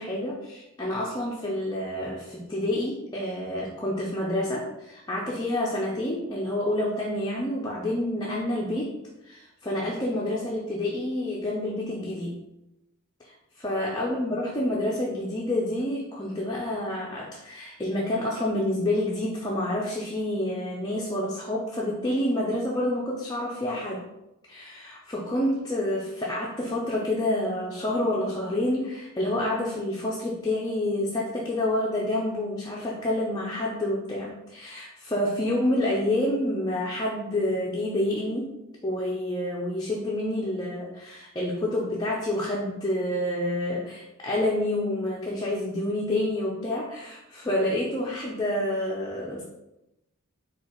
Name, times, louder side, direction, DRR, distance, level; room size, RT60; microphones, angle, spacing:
voice 1, 0.0-8.9 9.2-12.4 13.2-24.0 24.5-38.5 38.8-49.4, left 1 dB, 20° left, -4 dB, 0.5 m, -28 dB
4.5 x 2.3 x 4.4 m, 0.92 s
head